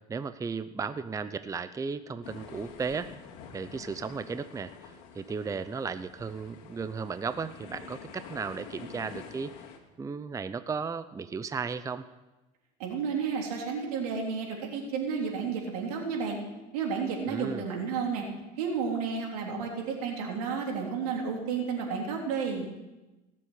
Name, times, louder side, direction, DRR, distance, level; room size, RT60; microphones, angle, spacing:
voice 1, 0.1-3.1 3.5-9.5 10.0-12.0 17.3-17.6, right 5 dB, 15° right, 12 dB, 0.6 m, -35 dB
sound 1, 2.2-9.8, left 7 dB, 75° left, 2.2 m, -47 dB
voice 2, 12.8-16.4 16.7-18.3 18.6-22.7, right 5 dB, 90° right, 0 dB, 3.5 m, -32 dB
18.0 x 7.6 x 8.2 m, 1.1 s
supercardioid pair, 105°, 19 cm